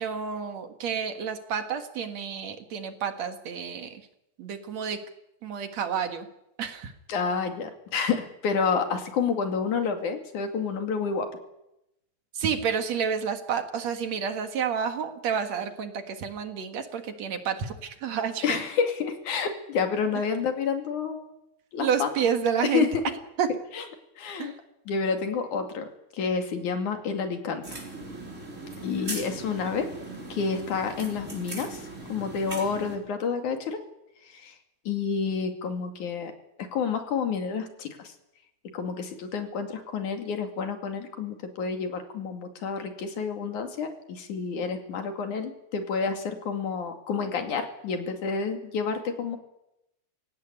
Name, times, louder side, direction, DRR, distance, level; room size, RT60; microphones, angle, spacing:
voice 1, 0.0-4.0 4.4-5.0 5.4-6.3 6.6-6.9 12.3-18.6 21.8-22.9 23.4-23.5 24.4-24.6, right 7 dB, 65° right, 7 dB, 2.9 m, -30 dB
voice 2, 7.1-11.3 18.4-21.3 21.7-22.1 22.6-23.0 23.7-23.8 24.2-24.5 24.9-25.9 26.1-27.8 28.8-29.9 30.3-31.8 32.1-33.8 34.3-34.6 34.9-36.3 36.7-38.1 38.7-49.4, left 5 dB, 85° left, 5 dB, 3.9 m, -29 dB
sound 1, 27.6-33.0, right 2 dB, 25° right, 4.8 m, -39 dB
23.5 x 17.0 x 9.8 m, 0.86 s
omnidirectional pair, 3.4 m